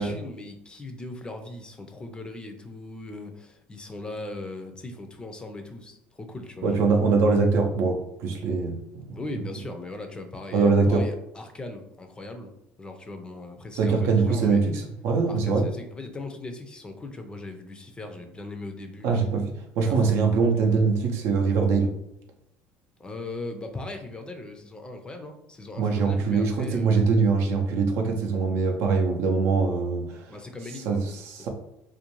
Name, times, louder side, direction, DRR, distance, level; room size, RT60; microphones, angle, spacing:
voice 1, 0.0-7.1 9.1-12.5 12.8-14.7 15.3-19.3 19.8-20.2 23.0-27.1 30.3-31.0, left 2 dB, 20° left, 6 dB, 0.4 m, -39 dB
voice 2, 6.6-9.2 10.5-11.0 13.7-15.7 19.0-21.9 25.8-30.3 30.9-31.5, right 4 dB, 65° right, 3 dB, 0.5 m, -23 dB
2.5 x 2.2 x 3.0 m, 0.82 s
supercardioid pair, 90°, 5 cm